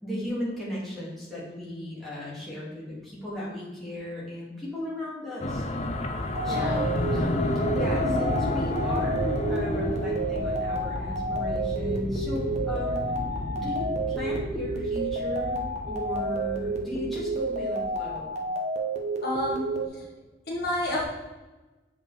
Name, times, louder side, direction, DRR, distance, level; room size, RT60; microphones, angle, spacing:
voice 1, 0.0-5.7 6.4-13.2 13.5-15.6 15.9-18.3, left 1 dB, ahead, -9 dB, 2.2 m, -36 dB
sound 1, 5.4-18.0, left 1 dB, 35° left, 0.5 m, -31 dB
sound 2, 6.3-19.9, right 2 dB, 35° right, 0.9 m, -30 dB
voice 2, 6.4-6.8 7.9-8.2 19.2-19.7 19.9-20.0 20.5-21.0, left 1 dB, 60° left, -4 dB, 1.7 m, -30 dB
7.1 x 5.3 x 3.4 m, 1.2 s
head